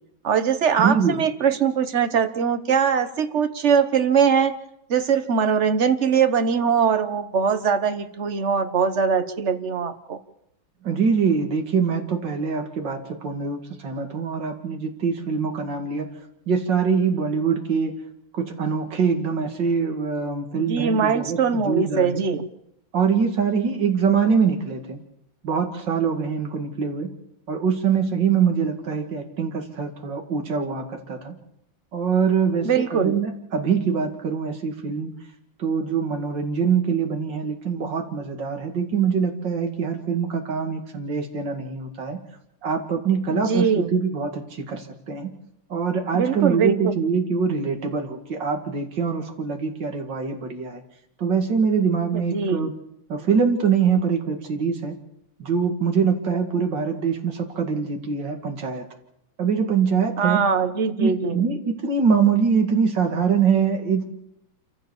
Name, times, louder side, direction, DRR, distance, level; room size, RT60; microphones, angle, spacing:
voice 1, 0.2-4.5 4.9-10.2 20.5-22.5 32.6-33.2 43.3-44.0 46.1-47.0 52.1-52.7 60.2-61.4, right 6 dB, 40° right, 9 dB, 1.2 m, -22 dB
voice 2, 0.8-1.2 10.8-16.1 16.5-17.9 18.3-22.2 22.9-25.0 25.4-27.1 27.5-31.4 31.9-35.1 35.6-42.2 42.6-45.3 45.7-50.8 51.2-52.7 53.1-54.9 55.4-58.8 59.4-60.4 61.0-64.1, right 6 dB, 60° right, 4 dB, 2.9 m, -23 dB
28.0 x 14.5 x 7.2 m, 0.81 s
omnidirectional pair, 2.3 m